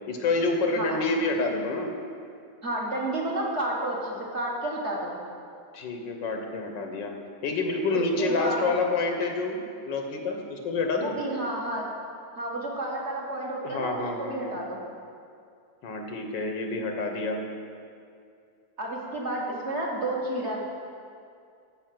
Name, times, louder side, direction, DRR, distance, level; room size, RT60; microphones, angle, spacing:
voice 1, 0.1-1.9 5.7-7.1 7.4-11.2 13.6-14.6 15.8-17.4, left 3 dB, 85° left, 3 dB, 1.9 m, -28 dB
voice 2, 2.6-5.2 7.9-8.7 11.0-11.9 12.4-14.8 18.8-20.6, right 1 dB, 40° right, -3 dB, 2.0 m, -31 dB
13.0 x 5.6 x 7.7 m, 2.4 s
omnidirectional pair, 1.9 m